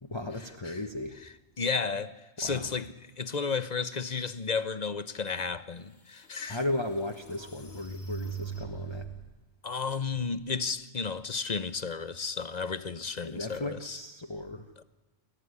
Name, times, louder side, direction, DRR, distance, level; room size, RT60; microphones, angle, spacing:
voice 1, 0.0-1.2 2.4-2.7 6.5-9.1 13.2-14.6, left 1 dB, 25° left, 1.4 m, -35 dB
voice 2, 1.2-6.6 9.6-14.0 14.8-14.9, left 5 dB, 40° left, 1.0 m, -33 dB
sound 1, 5.6-5.7 6.2-9.3, right 5 dB, 60° left, 2.6 m, -41 dB
29.0 x 14.0 x 9.7 m
omnidirectional pair, 1.1 m